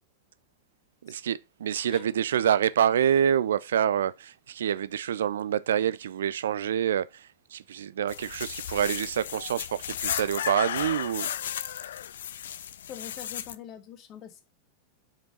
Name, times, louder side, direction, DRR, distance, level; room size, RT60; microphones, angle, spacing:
voice 1, 1.0-11.3, right 9 dB, 65° right, 0.3 m, -27 dB
sound 1, 8.1-13.6, left 10 dB, 60° left, 0.5 m, -34 dB
voice 2, 12.9-14.4, left 10 dB, 35° left, 1.5 m, -43 dB
5.7 x 5.1 x 5.4 m
figure-of-eight pair, 90°, 0 cm